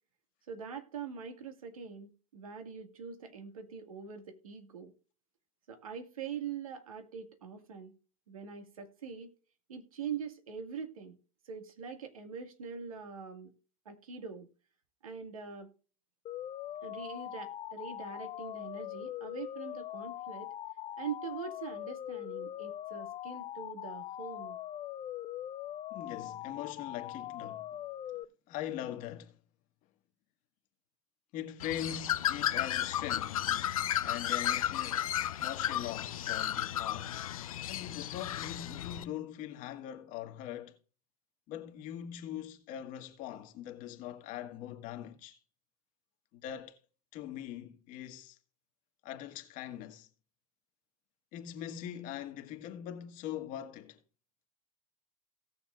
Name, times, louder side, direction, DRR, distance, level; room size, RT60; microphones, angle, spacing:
voice 1, 0.5-4.9 5.7-7.9 8.3-9.3 9.7-11.2 11.4-13.5 13.9-14.5 15.0-15.7 16.8-20.5 21.0-24.6, right 6 dB, 85° right, 2.1 m, -43 dB
sound 1, 16.3-28.2, left 12 dB, 30° left, 0.5 m, -42 dB
voice 2, 25.9-27.7 28.5-29.4 31.3-33.5 34.0-35.1 35.4-37.2 37.7-40.8 41.5-45.4 46.3-46.8 47.1-48.4 49.0-50.1 51.3-54.0, left 11 dB, 50° left, 1.8 m, -42 dB
Bird, 31.6-39.0, left 11 dB, 80° left, 0.7 m, -33 dB
17.5 x 6.9 x 2.5 m
hypercardioid pair, 100°, 18 cm